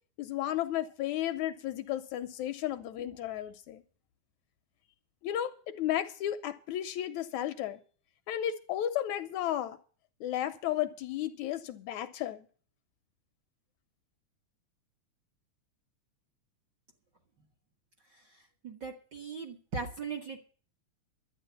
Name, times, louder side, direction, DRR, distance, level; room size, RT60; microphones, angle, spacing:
voice 1, 0.2-3.8 5.2-7.8 8.3-9.8 10.2-12.5, left 12 dB, 75° left, 1.9 m, -33 dB
voice 2, 18.6-20.4, right 4 dB, 45° right, 1.5 m, -38 dB
12.0 x 9.0 x 6.8 m
omnidirectional pair, 3.6 m